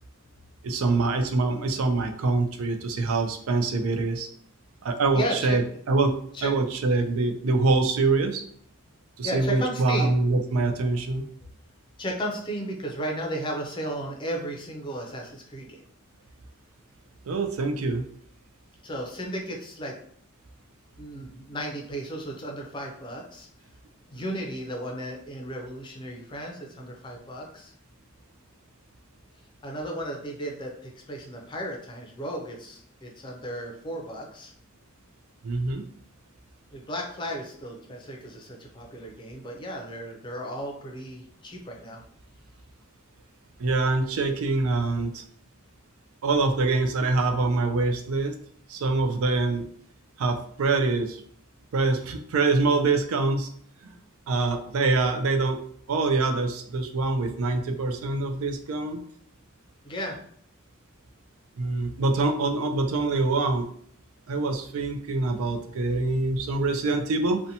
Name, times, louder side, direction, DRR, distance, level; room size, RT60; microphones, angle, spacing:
voice 1, 0.6-4.3 4.8-5.6 5.9-8.4 9.2-11.3 17.3-18.0 35.4-35.8 43.6-45.2 46.2-48.3 48.7-49.7 50.2-51.2 51.7-53.5 53.8-53.9 54.3-55.6 55.9-59.0 61.6-63.7 64.3-67.4, right 3 dB, 90° right, 6 dB, 0.4 m, -25 dB
voice 2, 5.1-5.6 6.3-6.5 9.2-10.2 12.0-15.8 18.8-19.9 21.0-23.5 24.1-27.7 29.6-34.5 36.7-42.0 59.8-60.2, equal, 25° left, 0 dB, 0.5 m, -34 dB
2.7 x 2.2 x 2.6 m, 0.62 s
head